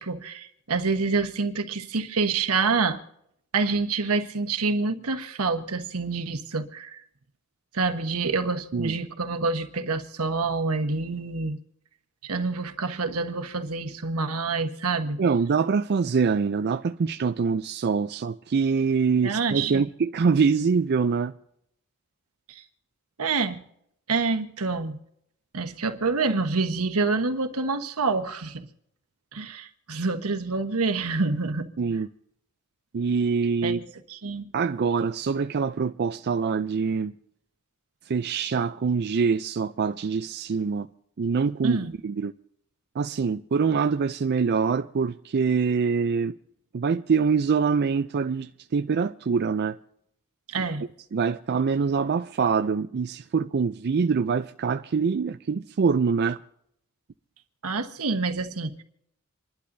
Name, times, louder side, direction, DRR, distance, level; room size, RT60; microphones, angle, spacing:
voice 1, 0.0-3.0 3.5-7.0 7.7-11.6 12.2-15.2 19.2-19.9 22.5-22.6 23.2-23.6 24.1-25.0 25.5-28.7 29.3-31.7 33.6-34.5 41.6-41.9 50.5-50.8 57.6-58.8, right 4 dB, 85° right, 1.3 m, -27 dB
voice 2, 15.2-21.3 31.8-32.1 32.9-33.8 34.5-37.1 38.1-40.9 41.2-42.3 43.0-46.3 46.7-49.8 50.6-50.7 51.1-56.4, right 5 dB, 50° right, 0.4 m, -24 dB
27.5 x 11.5 x 2.7 m
head